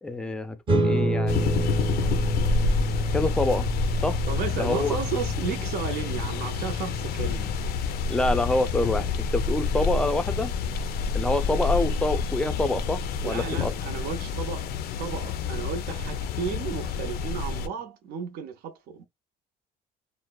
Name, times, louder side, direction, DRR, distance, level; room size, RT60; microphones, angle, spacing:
voice 1, 0.0-1.7 3.1-3.7 4.0-4.2 4.6-5.0 8.1-10.5 11.1-13.7, left 2 dB, 5° left, 0.4 m, -27 dB
sound 1, 0.7-11.4, right 1 dB, 30° right, 0.7 m, -31 dB
sound 2, 1.3-17.7, left 5 dB, 65° left, 0.4 m, -28 dB
voice 2, 4.3-7.6 13.2-14.7 15.0-19.0, right 6 dB, 70° right, 0.6 m, -33 dB
3.1 x 2.0 x 2.2 m
cardioid pair, 110°, 17 cm